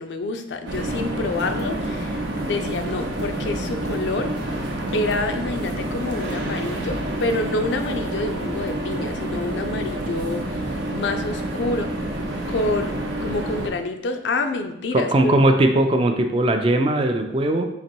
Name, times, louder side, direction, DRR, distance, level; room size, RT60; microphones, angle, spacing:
voice 1, 0.0-4.4 4.9-11.9 12.5-15.4, left 2 dB, 80° left, 7 dB, 0.5 m, -27 dB
sound 1, 0.7-13.7, right 1 dB, 85° right, 0.7 m, -28 dB
voice 2, 14.9-17.6, right 1 dB, 30° right, 5 dB, 0.4 m, -19 dB
4.1 x 3.0 x 4.4 m, 0.85 s
head